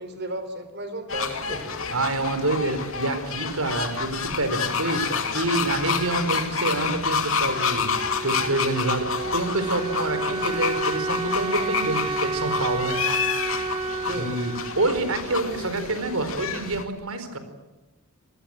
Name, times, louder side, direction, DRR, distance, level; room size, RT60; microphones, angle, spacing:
voice 1, 0.0-1.8 14.0-14.3, right 1 dB, 45° right, 10 dB, 3.9 m, -34 dB
sound 1, 1.1-16.8, left 6 dB, 65° left, 2.7 m, -29 dB
voice 2, 1.9-13.1 14.1-17.4, right 2 dB, 75° right, 10 dB, 4.3 m, -27 dB
Wind instrument woodwind instrument, 7.5-16.2, right 4 dB, 25° right, 1.0 m, -31 dB
27.0 x 20.0 x 9.0 m, 1.1 s
head